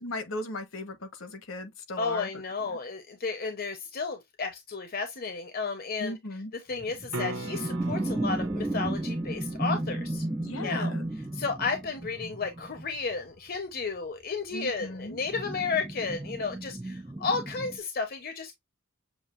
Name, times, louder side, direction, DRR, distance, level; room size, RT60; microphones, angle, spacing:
voice 1, 0.0-2.3 2.7-2.8 6.0-6.5 10.4-11.1 14.5-15.2, left 2 dB, 65° left, 1.1 m, -37 dB
voice 2, 2.0-6.1 6.7-10.2 10.6-10.9 11.3-18.5, left 4 dB, 45° left, 0.8 m, -33 dB
sound 1, 6.8-13.2 15.1-17.8, right 1 dB, 10° right, 0.4 m, -33 dB
sound 2, 7.1-13.1 17.8-17.9, right 2 dB, 85° right, 0.7 m, -43 dB
7.2 x 2.4 x 2.5 m
head